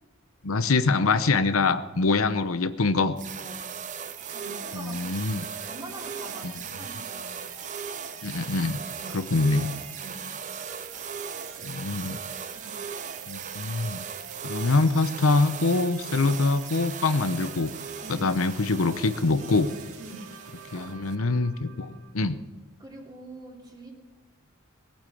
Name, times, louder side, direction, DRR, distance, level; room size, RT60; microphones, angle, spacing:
voice 1, 0.4-3.2 4.7-5.4 6.4-6.5 8.2-8.8 9.1-9.7 11.6-12.2 13.3-14.0 14.4-17.7 18.1-19.7 20.7-22.4, left 3 dB, 80° left, 11 dB, 0.8 m, -24 dB
sound 1, 3.2-21.2, right 7 dB, 35° right, 0.6 m, -38 dB
voice 2, 3.4-3.7 4.3-5.0 5.7-7.4 9.0-9.3 10.0-10.3 11.6-11.9 12.5-12.8 18.0-18.3 20.0-20.4 20.7-21.0 21.6-21.9 22.8-23.9, right 1 dB, 20° right, -1 dB, 3.2 m, -44 dB
sound 2, 4.2-22.1, right 5 dB, 90° right, 2.2 m, -46 dB
19.5 x 8.8 x 7.2 m, 1.2 s
head